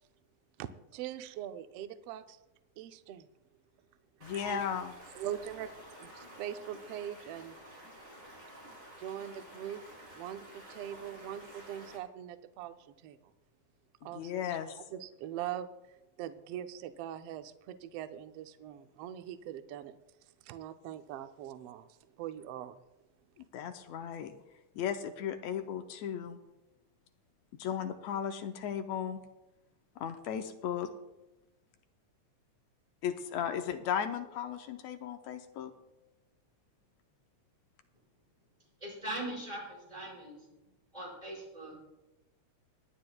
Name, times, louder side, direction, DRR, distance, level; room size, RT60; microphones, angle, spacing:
voice 1, 0.6-2.4 2.8-3.3 4.3-4.6 5.2-5.7 6.0-7.6 9.0-9.8 10.2-13.2 14.0-14.4 14.7-15.7 16.2-20.0 20.4-21.9 22.2-22.8, right 11 dB, 85° right, 9 dB, 1.3 m, -42 dB
voice 2, 4.2-4.9 14.0-14.8 23.5-24.3 24.7-26.4 27.6-29.2 30.0-30.9 33.0-35.7, left 8 dB, 75° left, 7 dB, 1.8 m, -36 dB
Stream, 4.2-12.0, right 1 dB, 30° right, 5.0 m, -51 dB
voice 3, 38.8-40.5 40.9-41.8, right 1 dB, 10° right, -4 dB, 5.1 m, -41 dB
27.0 x 9.7 x 2.3 m, 0.99 s
omnidirectional pair, 3.4 m